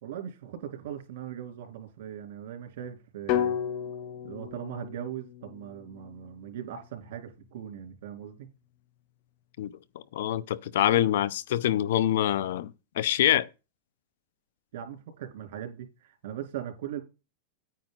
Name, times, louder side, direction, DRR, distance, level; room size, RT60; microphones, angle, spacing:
voice 1, 0.0-3.5 4.2-8.5 14.7-17.0, right 10 dB, 65° right, 3.4 m, -39 dB
sound 1, 3.3-7.3, left 9 dB, 50° left, 1.3 m, -34 dB
voice 2, 10.1-13.5, left 12 dB, 75° left, 0.7 m, -25 dB
9.7 x 9.3 x 3.9 m
supercardioid pair, 145°, 0 cm